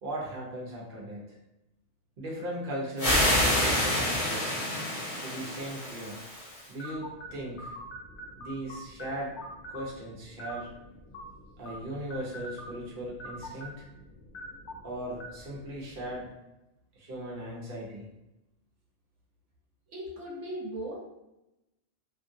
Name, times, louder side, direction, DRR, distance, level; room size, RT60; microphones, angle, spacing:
voice 1, 0.0-1.2 2.2-4.6 5.2-6.2 6.7-7.7 8.4-9.3 9.7-10.7 11.6-13.8 14.8-16.3 17.0-18.1, right 1 dB, 55° right, -4 dB, 1.0 m, -38 dB
sound 1, 3.0-6.6, left 1 dB, 30° left, 1.2 m, -27 dB
sound 2, 6.8-16.3, equal, 75° left, 0.9 m, -45 dB
voice 2, 19.9-21.0, right 1 dB, 85° right, -3 dB, 1.1 m, -38 dB
2.9 x 2.4 x 2.6 m, 0.94 s
omnidirectional pair, 1.2 m